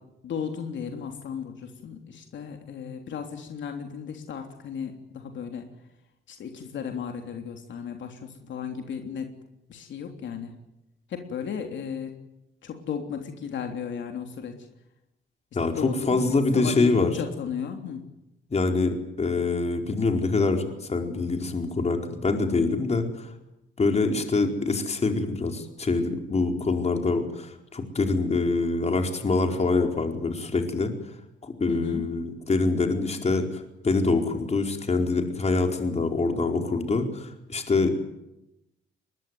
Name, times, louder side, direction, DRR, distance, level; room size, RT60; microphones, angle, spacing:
voice 1, 0.2-5.7 6.3-9.3 9.7-10.6 11.1-12.1 12.6-14.6 15.6-18.1 31.7-32.1 37.8-37.9, left 7 dB, 70° left, 5 dB, 3.3 m, -35 dB
voice 2, 15.5-17.1 18.5-23.3 23.8-30.9 31.4-37.9, left 3 dB, 35° left, 5 dB, 4.6 m, -25 dB
23.5 x 20.5 x 9.6 m, 0.89 s
cardioid pair, 90°, 20 cm